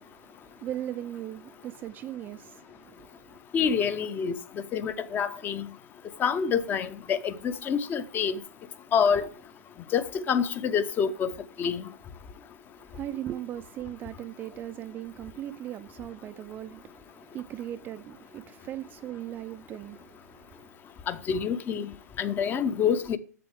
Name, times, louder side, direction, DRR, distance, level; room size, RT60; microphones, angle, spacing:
voice 1, 0.0-3.4 12.8-20.7, right 12 dB, 20° right, 0.3 m, -39 dB
voice 2, 3.5-4.4 4.7-5.7 6.2-8.4 8.9-9.3 9.9-11.3 11.6-11.8 21.1-21.9 22.2-23.2, left 7 dB, 20° left, 0.6 m, -27 dB
7.7 x 7.6 x 3.4 m
figure-of-eight pair, 115°, 9 cm